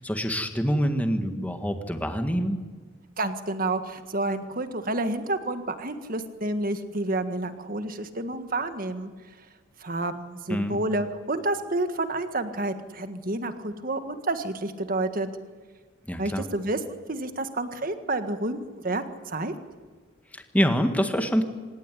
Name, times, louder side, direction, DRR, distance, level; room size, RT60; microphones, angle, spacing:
voice 1, 0.0-2.6 10.5-10.8 16.1-16.5 20.3-21.4, equal, 10° left, 6 dB, 1.7 m, -26 dB
voice 2, 3.2-9.1 9.8-15.3 16.2-19.5, right 2 dB, 45° right, 9 dB, 1.7 m, -29 dB
26.5 x 17.0 x 10.0 m, 1.5 s
head